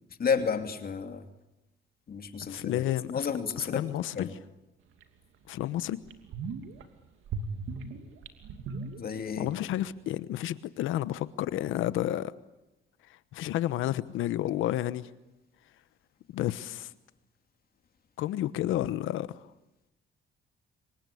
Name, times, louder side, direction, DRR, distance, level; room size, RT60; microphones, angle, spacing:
voice 1, 0.2-1.3 2.1-2.8 3.1-3.9 4.1-4.3 9.0-9.5, left 6 dB, 50° left, 2.8 m, -31 dB
voice 2, 2.5-3.2 3.7-4.3 5.5-6.0 9.4-12.3 13.3-15.1 16.3-16.9 18.2-19.3, left 13 dB, 90° left, 1.1 m, -30 dB
sound 1, 5.0-5.1 5.6-5.7 6.0-6.8 7.3-9.5 9.8-9.9, right 4 dB, 80° right, 2.8 m, -37 dB
27.5 x 24.5 x 8.6 m
cardioid pair, 90°, 20 cm